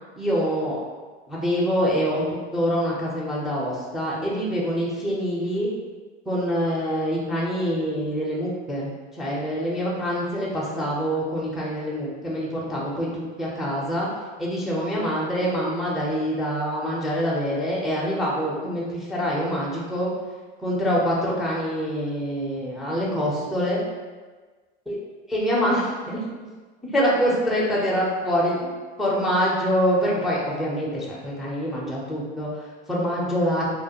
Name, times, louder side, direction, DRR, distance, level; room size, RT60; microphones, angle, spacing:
voice 1, 0.2-0.8 1.3-2.2 2.5-5.7 6.3-14.1 14.4-20.1 20.6-23.8 24.9-25.0 25.3-26.2 26.9-28.6 29.0-33.7, equal, ahead, -6 dB, 0.4 m, -25 dB
2.4 x 2.0 x 2.8 m, 1.4 s
hypercardioid pair, 95°, 34 cm